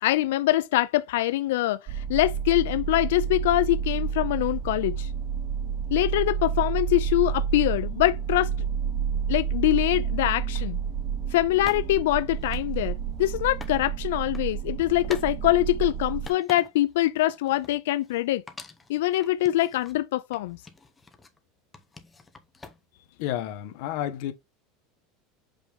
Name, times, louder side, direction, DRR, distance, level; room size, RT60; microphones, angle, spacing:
voice 1, 0.0-5.1 5.9-8.5 9.3-10.8 11.3-18.4 18.9-20.6, left 15 dB, 85° left, 0.4 m, -24 dB
sound 1, 1.9-16.3, right 7 dB, 25° right, 0.7 m, -30 dB
sound 2, 10.5-10.7 11.7-13.8 14.1-14.5 15.0-15.3 15.7-16.9 17.3-18.2 18.5-20.0 20.3-21.4 21.7-23.0, left 3 dB, 10° left, 0.7 m, -46 dB
voice 2, 23.2-24.3, left 11 dB, 55° left, 1.0 m, -30 dB
6.1 x 5.2 x 3.4 m
supercardioid pair, 175°, 0 cm